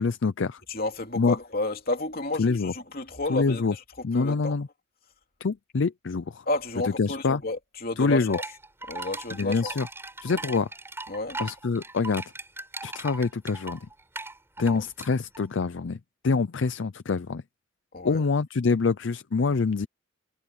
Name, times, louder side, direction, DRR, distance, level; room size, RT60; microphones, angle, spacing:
voice 1, 0.0-0.6 1.2-1.4 2.4-2.7 3.3-3.7 4.0-4.7 5.4-6.4 6.8-7.4 8.0-8.4 9.3-9.9 10.2-10.7 11.4-12.2 12.8-13.8 14.6-16.0 16.2-17.4 18.0-19.9, left 4 dB, 60° left, 0.5 m, -25 dB
voice 2, 0.7-3.8 4.1-4.6 6.5-8.4 8.9-9.8 10.3-10.4 11.1-11.4 14.6-14.8 17.9-18.2, left 2 dB, 45° left, 3.0 m, -31 dB
sound 1, 8.3-15.4, right 2 dB, 10° right, 5.5 m, -39 dB
head